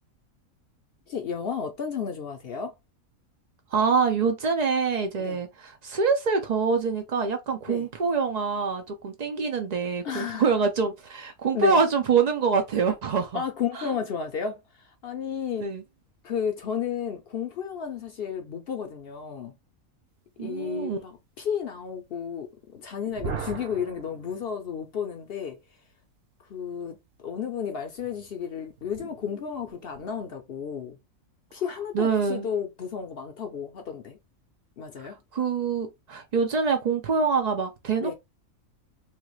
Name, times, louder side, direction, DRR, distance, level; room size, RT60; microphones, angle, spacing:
voice 1, 1.1-2.7 5.2-5.4 7.7-7.9 10.0-10.5 11.5-11.8 13.3-15.7 16.2-19.6 20.4-25.6 26.5-27.0 27.2-31.0 31.5-34.2 34.8-35.2 38.0-38.1, left 7 dB, 60° left, 0.6 m, -32 dB
voice 2, 3.7-13.4 13.7-13.9 15.6-15.8 20.4-21.0 31.9-32.5 35.0-38.1, right 5 dB, 75° right, 0.3 m, -25 dB
sound 1, 23.1-25.0 27.9-30.3, right 6 dB, 60° right, 0.8 m, -40 dB
3.3 x 2.4 x 3.0 m
omnidirectional pair, 1.5 m